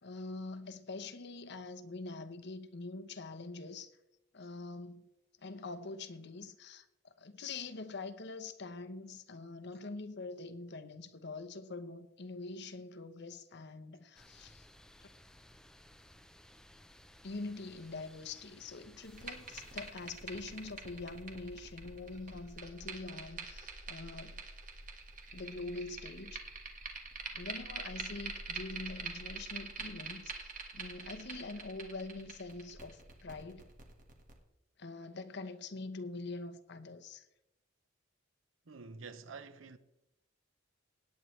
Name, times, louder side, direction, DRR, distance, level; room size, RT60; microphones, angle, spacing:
voice 1, 0.0-3.9 4.3-5.1 5.4-14.7 15.0-15.1 17.2-24.4 25.3-26.4 27.3-33.7 34.8-37.3, left 3 dB, 60° left, 0.9 m, -44 dB
sound 1, 14.1-19.9, left 1 dB, 5° left, 0.6 m, -59 dB
sound 2, 19.0-34.3, right 4 dB, 40° right, 1.7 m, -45 dB
voice 2, 38.7-39.8, right 4 dB, 85° right, 0.8 m, -48 dB
17.0 x 9.3 x 3.2 m
head